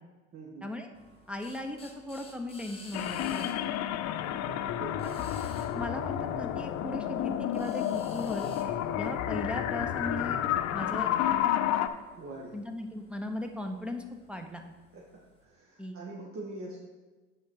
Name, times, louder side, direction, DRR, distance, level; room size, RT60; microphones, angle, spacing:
voice 1, 0.3-0.7 4.2-5.1 12.2-12.6 14.9-15.0 15.4-16.8, right 2 dB, 40° right, -3 dB, 1.4 m, -43 dB
sound 1, 0.9-15.4, left 3 dB, 15° left, 1.7 m, -55 dB
voice 2, 1.3-3.5 5.0-5.2 5.7-8.5 9.0-10.4 10.7-11.1 12.5-14.6 15.8-16.0, left 1 dB, 5° right, 3 dB, 0.8 m, -37 dB
sound 2, 2.9-11.9, left 11 dB, 50° left, 0.6 m, -30 dB
7.6 x 5.5 x 4.7 m, 1.3 s
hypercardioid pair, 80°, 35 cm